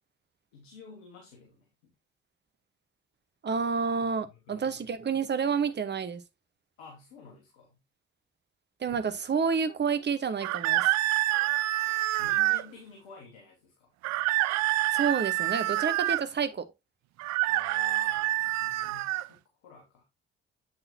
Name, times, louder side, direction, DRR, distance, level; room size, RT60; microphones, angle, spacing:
voice 1, 0.5-1.7 4.2-4.7 6.8-7.8 12.2-13.9 17.4-20.0, left 4 dB, 80° left, 1.6 m, -50 dB
voice 2, 3.4-6.2 8.8-10.9 14.9-16.7, right 6 dB, 35° right, 1.0 m, -29 dB
sound 1, 10.4-12.6 14.0-16.2 17.2-19.3, right 17 dB, 60° right, 0.4 m, -27 dB
7.8 x 6.1 x 2.7 m
hypercardioid pair, 45°, 31 cm